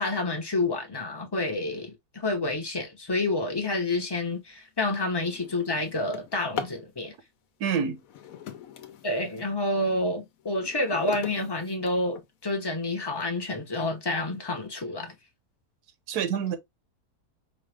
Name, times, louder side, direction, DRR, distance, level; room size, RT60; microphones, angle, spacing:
voice 1, 0.0-7.1 9.0-15.1, left 2 dB, 20° left, 0.7 m, -29 dB
Drawer open or close, 4.2-4.4 4.9-6.9 7.9-9.5 10.1-12.5 13.2-13.3 13.7-13.8 14.2-14.6, left 7 dB, 70° left, 1.0 m, -40 dB
voice 2, 7.6-8.0 16.1-16.6, right 7 dB, 80° right, 1.3 m, -27 dB
5.1 x 2.4 x 3.3 m
omnidirectional pair, 1.6 m